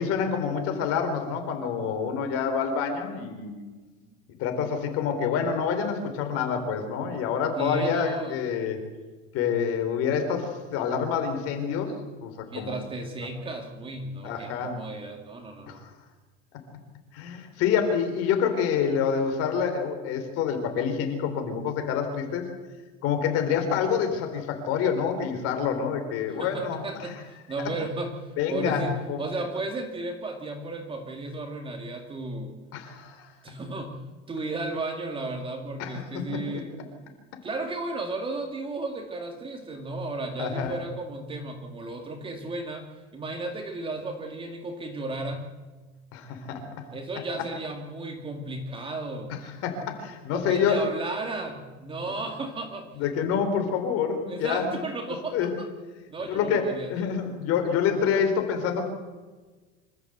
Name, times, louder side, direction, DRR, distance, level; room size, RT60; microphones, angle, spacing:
voice 1, 0.0-3.6 4.4-8.8 9.3-11.9 12.2-12.8 14.2-14.8 15.7-15.9 17.1-22.4 23.0-27.1 28.4-28.8 29.1-29.2 32.7-33.3 35.8-36.2 40.4-40.8 46.1-46.6 49.6-50.9 53.0-54.8 55.3-55.5 56.3-58.9, left 7 dB, 50° left, 6 dB, 4.4 m, -27 dB
voice 2, 7.6-8.4 12.5-15.8 26.4-32.6 33.4-34.0 34.3-36.8 37.4-42.9 43.1-45.4 46.9-49.3 50.3-52.9 54.3-55.7 56.1-57.2, right 2 dB, 15° right, 4 dB, 2.3 m, -34 dB
26.0 x 14.0 x 8.2 m, 1.3 s
cardioid pair, 160°, 31 cm